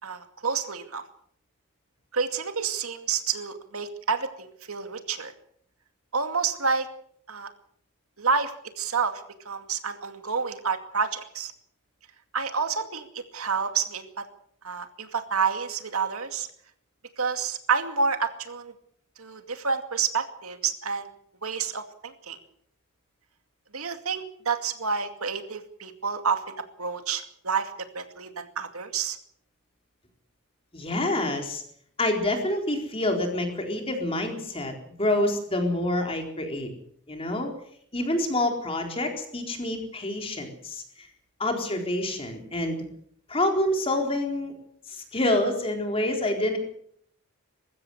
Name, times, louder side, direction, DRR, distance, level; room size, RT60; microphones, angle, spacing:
voice 1, 0.0-1.0 2.1-5.3 6.1-6.9 7.3-7.5 8.2-11.5 12.3-14.2 14.6-16.5 17.2-18.7 19.2-21.1 21.4-22.4 23.7-29.2, right 5 dB, 75° right, 7 dB, 2.4 m, -29 dB
voice 2, 30.7-31.6 32.0-34.7 35.0-36.7 37.1-37.5 37.9-41.1 41.4-42.8 43.3-44.5 44.9-46.6, left 1 dB, 25° left, 3 dB, 4.1 m, -27 dB
21.0 x 15.5 x 8.0 m, 0.66 s
head